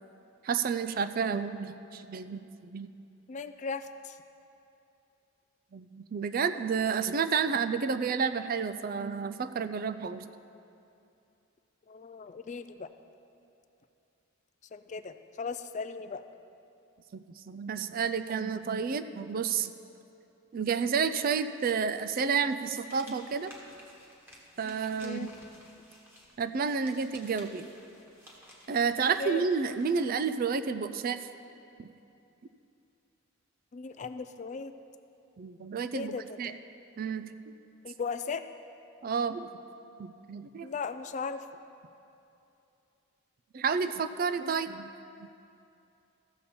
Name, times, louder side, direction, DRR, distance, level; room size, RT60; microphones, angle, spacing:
voice 1, 0.4-2.9 5.7-10.3 17.1-19.7 20.5-23.5 24.6-25.3 26.4-27.7 28.7-31.2 31.8-31.9 35.4-36.5 37.0-37.3 39.0-39.5 40.0-40.7 43.5-44.9, right 6 dB, 45° right, 11 dB, 0.3 m, -30 dB
voice 2, 3.3-4.2 11.9-12.9 14.7-16.2 25.0-25.3 29.0-29.5 33.7-34.7 35.9-36.6 37.8-38.4 40.6-41.5, left 5 dB, 35° left, 11 dB, 0.3 m, -37 dB
sound 1, 22.6-30.1, equal, 10° right, 1.4 m, -54 dB
14.5 x 7.0 x 4.3 m, 2.7 s
head